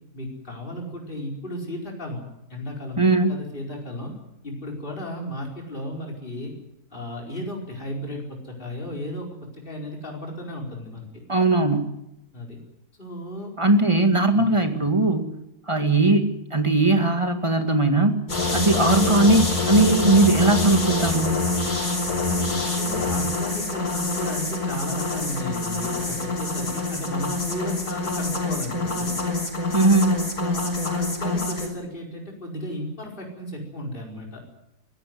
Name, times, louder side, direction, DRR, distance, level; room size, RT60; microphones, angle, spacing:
voice 1, 0.1-2.2 2.5-4.1 4.4-6.5 6.9-11.2 12.3-12.6 13.0-13.5 14.3-14.5 22.2-29.2 30.4-34.4, equal, 35° left, 0 dB, 5.0 m, -34 dB
voice 2, 3.0-3.4 11.3-11.9 13.6-15.3 15.7-18.2 18.5-21.4 29.7-30.2, right 2 dB, 20° right, 6 dB, 2.0 m, -19 dB
sound 1, 18.3-31.7, left 2 dB, 90° left, 5.3 m, -26 dB
23.5 x 16.0 x 9.5 m, 0.85 s
omnidirectional pair, 1.6 m